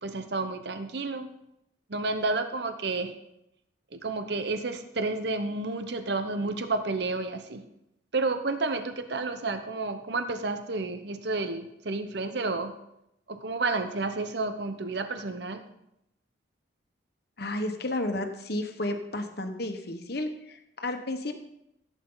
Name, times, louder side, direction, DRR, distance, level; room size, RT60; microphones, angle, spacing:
voice 1, 0.0-1.3 1.9-3.1 3.9-7.6 8.1-12.8 13.3-15.6, right 3 dB, 55° right, 8 dB, 0.8 m, -31 dB
voice 2, 17.4-21.4, left 1 dB, 55° left, 5 dB, 1.2 m, -32 dB
15.5 x 8.3 x 3.9 m, 0.83 s
head